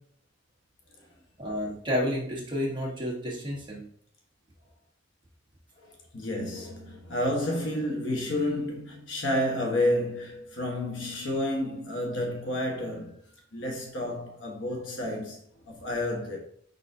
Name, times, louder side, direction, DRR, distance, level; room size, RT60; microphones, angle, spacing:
voice 1, 1.4-3.8, equal, 25° right, 1.2 m, -30 dB
voice 2, 5.8-13.2 13.5-16.4, left 1 dB, 90° left, 1.3 m, -30 dB
5.0 x 4.0 x 2.7 m
head